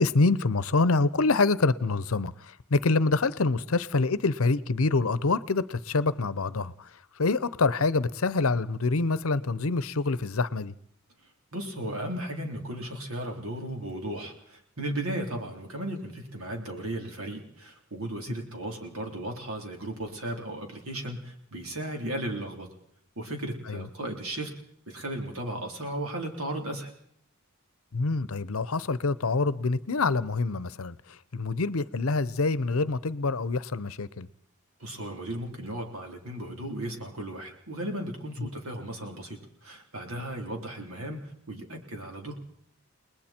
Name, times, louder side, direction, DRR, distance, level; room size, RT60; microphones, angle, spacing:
voice 1, 0.0-6.9 7.2-10.7 23.7-23.9 27.9-34.3, left 3 dB, 70° left, 0.8 m, -26 dB
voice 2, 11.5-22.7 23.2-24.5 24.9-26.9 34.8-42.3, right 1 dB, 70° right, 3.8 m, -35 dB
30.0 x 20.0 x 4.5 m
head